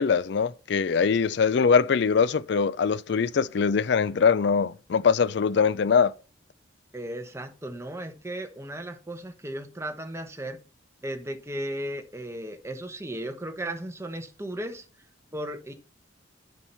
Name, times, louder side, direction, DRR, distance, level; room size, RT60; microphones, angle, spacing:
voice 1, 0.0-6.1, left 6 dB, 60° left, 0.4 m, -22 dB
voice 2, 6.9-10.6 11.0-14.8 15.3-15.7, right 1 dB, 15° right, 1.0 m, -35 dB
7.1 x 6.0 x 5.6 m
head